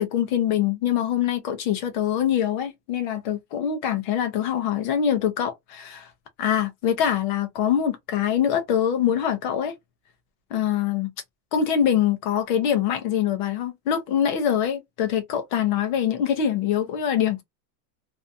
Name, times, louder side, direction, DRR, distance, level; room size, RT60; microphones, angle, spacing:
voice 1, 0.0-6.1 6.4-9.7 10.5-11.1 11.5-17.4, left 9 dB, 35° left, 0.4 m, -24 dB
2.5 x 2.2 x 2.5 m
supercardioid pair, 180°, 46 cm